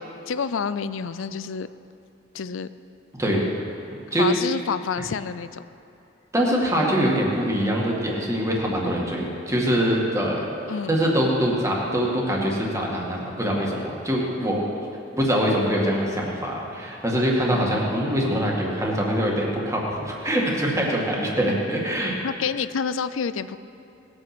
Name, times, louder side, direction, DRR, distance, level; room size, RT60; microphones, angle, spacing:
voice 1, 0.3-1.7 2.3-2.7 4.2-5.7 10.7-11.0 17.5-17.8 22.2-23.6, left 6 dB, 85° left, 13 dB, 0.5 m, -28 dB
voice 2, 3.1-3.4 4.1-4.3 6.3-10.5 10.9-14.6 15.1-22.2, equal, 15° right, -2 dB, 2.1 m, -23 dB
19.5 x 8.7 x 6.1 m, 2.7 s
head